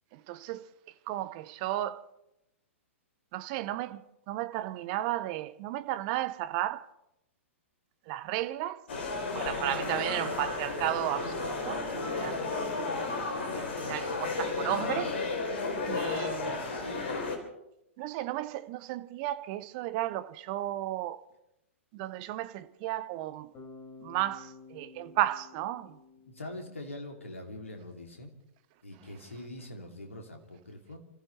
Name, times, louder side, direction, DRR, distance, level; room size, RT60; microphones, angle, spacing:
voice 1, 0.1-0.6 1.1-2.0 3.3-6.9 8.1-8.8 9.3-11.8 12.1-12.4 13.8-15.1 15.9-16.6 18.0-21.2 21.9-23.5 24.0-26.0, right 14 dB, 35° right, 0.8 m, -34 dB
sound 1, 8.9-17.4, left 3 dB, 55° left, 3.6 m, -33 dB
Bass guitar, 23.5-27.5, left 4 dB, 25° left, 5.7 m, -52 dB
voice 2, 26.3-28.3 28.8-31.0, left 1 dB, 75° left, 2.9 m, -43 dB
29.5 x 14.5 x 3.3 m
figure-of-eight pair, 110°, 7 cm